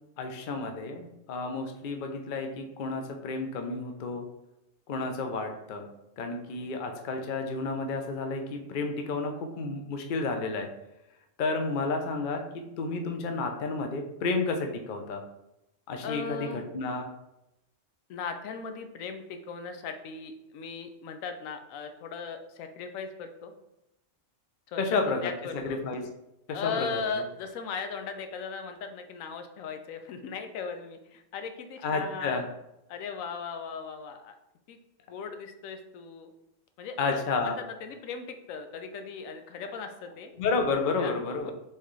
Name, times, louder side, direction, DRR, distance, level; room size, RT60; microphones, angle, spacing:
voice 1, 0.2-4.3 4.9-5.9 6.2-10.7 11.4-15.2 15.9-17.1 24.8-26.0 26.5-27.0 31.8-32.4 37.0-37.6 40.4-41.5, left 3 dB, 50° left, 4 dB, 0.6 m, -31 dB
voice 2, 16.0-16.6 18.1-23.5 24.7-24.8 25.2-25.8 26.5-32.5 32.9-34.3 34.7-34.8 35.1-36.3 36.8-40.3 41.0-41.1 41.4-41.5, left 5 dB, 85° left, 7 dB, 1.0 m, -38 dB
4.5 x 3.5 x 3.1 m, 0.87 s
omnidirectional pair, 1.3 m